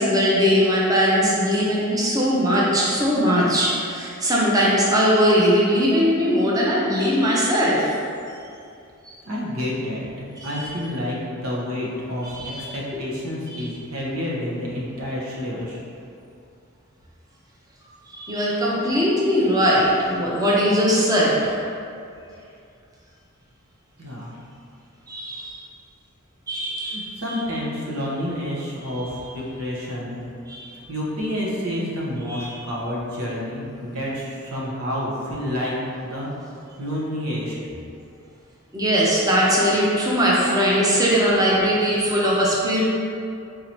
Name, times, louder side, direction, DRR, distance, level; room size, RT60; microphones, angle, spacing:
voice 1, 0.0-7.9 9.1-9.2 10.4-10.7 12.2-12.7 13.5-13.7 18.1-21.6 25.1-25.6 26.5-27.4 28.8-29.1 30.5-30.6 32.3-32.6 38.7-42.8, equal, 15° right, -6 dB, 0.6 m, -20 dB
voice 2, 9.3-15.8 24.0-24.4 26.9-30.2 30.9-35.7 36.0-36.3 36.8-37.6, left 1 dB, 90° right, -5 dB, 1.0 m, -29 dB
3.8 x 2.8 x 4.4 m, 2.5 s
head